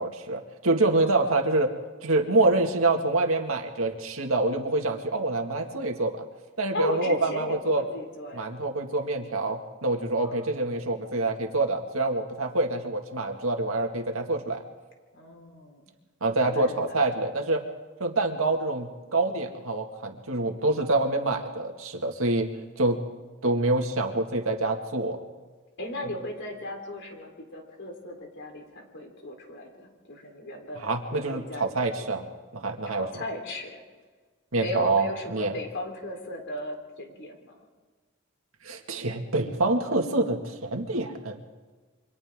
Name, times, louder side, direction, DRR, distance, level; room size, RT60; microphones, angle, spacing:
voice 1, 0.0-1.7 2.0-6.2 6.6-7.8 8.3-14.6 16.2-17.6 18.0-22.5 22.8-23.0 23.4-25.2 30.8-32.2 32.5-33.1 34.5-35.5 38.6-41.4, right 2 dB, 80° right, 4 dB, 2.1 m, -26 dB
voice 2, 0.9-1.4 6.7-8.6 10.2-10.7 15.1-15.9 16.3-17.2 25.8-32.1 32.8-33.8 34.6-37.6, left 1 dB, 60° left, 2 dB, 3.9 m, -37 dB
29.0 x 24.5 x 3.8 m, 1.4 s
head